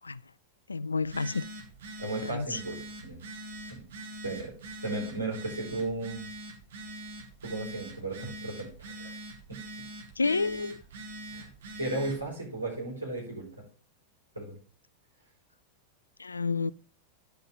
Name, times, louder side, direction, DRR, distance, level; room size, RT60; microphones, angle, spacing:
voice 1, 0.7-1.4 2.2-2.6 10.2-10.8 16.2-16.7, left 4 dB, 80° left, 0.3 m, -29 dB
Telephone, 1.0-12.3, right 1 dB, 60° right, 2.3 m, -44 dB
voice 2, 2.0-3.2 3.7-3.8 4.2-4.5 4.8-6.2 7.4-9.2 9.5-9.6 11.3-11.5 11.8-13.5 14.3-14.6, right 2 dB, 80° right, 4.8 m, -35 dB
11.0 x 6.5 x 3.7 m
figure-of-eight pair, 90°, 0 cm